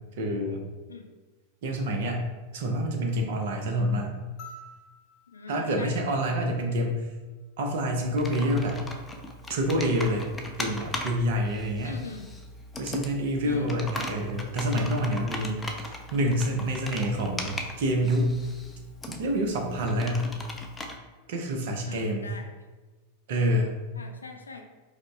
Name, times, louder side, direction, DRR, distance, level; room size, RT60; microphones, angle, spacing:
voice 1, 0.2-0.6 1.6-2.2 2.5-4.2 5.5-7.0 7.6-8.8 9.5-10.3 10.6-11.9 12.8-18.3 19.1-20.3 21.3-22.3 23.3-23.7, equal, 55° right, 2 dB, 0.7 m, -27 dB
sound 1, 4.4-6.9 8.6-8.7, left 1 dB, 40° left, 0.7 m, -50 dB
voice 2, 5.3-6.0 11.8-12.3 13.4-13.7 21.9-22.5 23.9-24.6, left 4 dB, 75° left, 4 dB, 0.4 m, -42 dB
Computer keyboard, 8.0-21.0, left 1 dB, 10° left, 0.5 m, -39 dB
4.9 x 2.1 x 3.4 m, 1.2 s
figure-of-eight pair, 90°, 0 cm